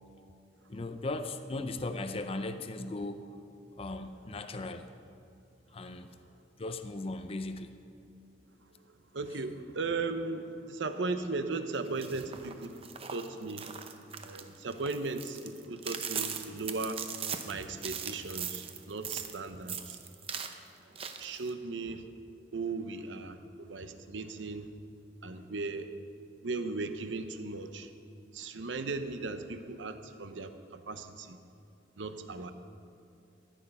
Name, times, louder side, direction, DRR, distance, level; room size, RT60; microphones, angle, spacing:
voice 1, 0.7-3.2 3.7-4.9 5.7-6.2 6.6-7.7, left 2 dB, 30° left, 8 dB, 0.5 m, -37 dB
voice 2, 9.1-12.8 13.1-13.7 14.2-17.0 17.4-20.0 21.2-22.0 22.5-24.7 25.2-25.9 26.4-27.9 28.3-31.4 32.0-32.5, right 3 dB, 80° right, 9 dB, 0.8 m, -37 dB
sound 1, 11.9-19.4 19.7-20.5 20.9-21.5, right 7 dB, 30° right, 0.6 m, -39 dB
14.0 x 9.2 x 5.4 m, 2.5 s
head